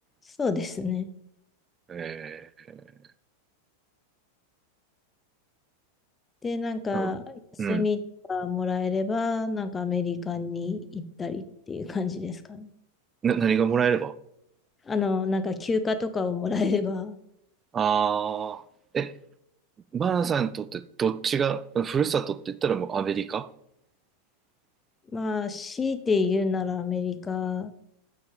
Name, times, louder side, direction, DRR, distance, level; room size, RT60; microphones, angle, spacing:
voice 1, 0.4-1.1 6.4-7.4 7.7-8.0 8.3-12.7 14.9-17.2 25.1-27.7, left 4 dB, 15° left, 0.8 m, -28 dB
voice 2, 1.9-2.8 6.9-7.1 7.6-7.8 13.2-14.1 17.7-18.6 18.9-19.1 19.9-23.5, right 7 dB, 20° right, 0.4 m, -26 dB
9.0 x 5.8 x 5.0 m
figure-of-eight pair, 90°, 0 cm